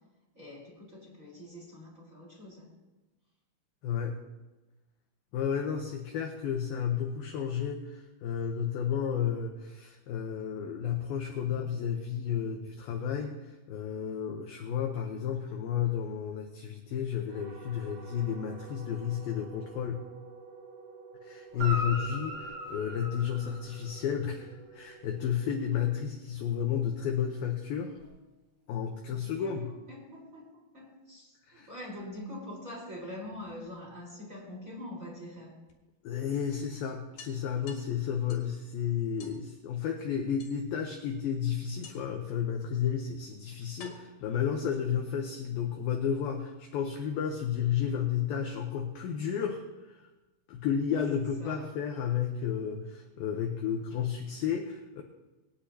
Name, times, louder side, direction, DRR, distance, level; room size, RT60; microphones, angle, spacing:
voice 1, 0.3-2.7 21.5-21.9 29.1-35.6 51.4-51.6, left 1 dB, 20° right, -5 dB, 4.1 m, -44 dB
voice 2, 3.8-4.2 5.3-20.0 21.2-28.0 28.7-29.7 31.5-31.7 36.0-50.1 50.5-55.0, left 8 dB, 75° left, 3 dB, 2.2 m, -32 dB
sound 1, 17.3-26.6, right 4 dB, 75° right, 4.4 m, -51 dB
Guitar, 21.5-24.1 28.0-28.1, equal, 35° right, 4.3 m, -38 dB
sound 2, 33.2-34.2 35.7-35.8 36.2-36.3 36.6-36.7 37.2-38.6 39.2-39.4 40.4-41.0 41.8-42.3 43.1-43.2 43.8-45.2, left 5 dB, 60° left, 3.6 m, -52 dB
22.0 x 9.9 x 2.9 m, 1.1 s
omnidirectional pair, 5.3 m